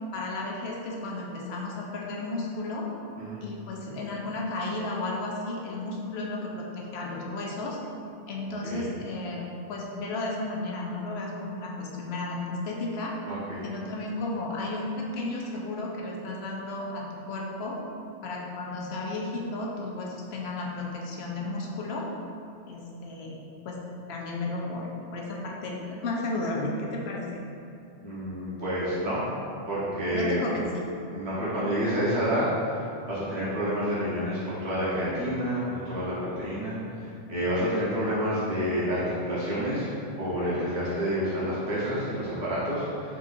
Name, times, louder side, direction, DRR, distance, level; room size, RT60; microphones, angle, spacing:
voice 1, 0.1-2.9 3.4-7.8 8.3-13.1 13.6-17.8 18.2-22.1 22.7-23.4 23.6-23.8 24.1-24.9 25.1-27.3 30.1-30.8, left 2 dB, 80° left, -2 dB, 0.9 m, -33 dB
voice 2, 13.3-13.6 28.0-29.2 29.7-30.4 31.1-32.8 33.1-39.9 40.2-43.2, equal, 85° right, -10 dB, 1.2 m, -29 dB
4.0 x 3.6 x 2.5 m, 2.6 s
omnidirectional pair, 1.1 m